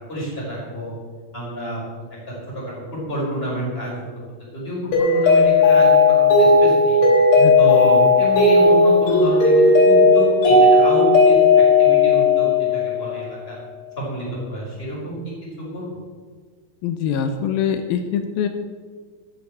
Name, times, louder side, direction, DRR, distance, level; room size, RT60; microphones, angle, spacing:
voice 1, 0.1-0.9 1.3-2.1 2.5-4.2 4.5-7.0 7.6-13.5 14.0-15.9, equal, 15° left, -5 dB, 5.3 m, -28 dB
Mallet percussion, 4.9-13.1, left 3 dB, 60° left, 4.8 m, -14 dB
voice 2, 16.8-18.5, left 8 dB, 80° left, 7 dB, 2.6 m, -23 dB
13.0 x 8.8 x 7.6 m, 1.5 s
omnidirectional pair, 4.2 m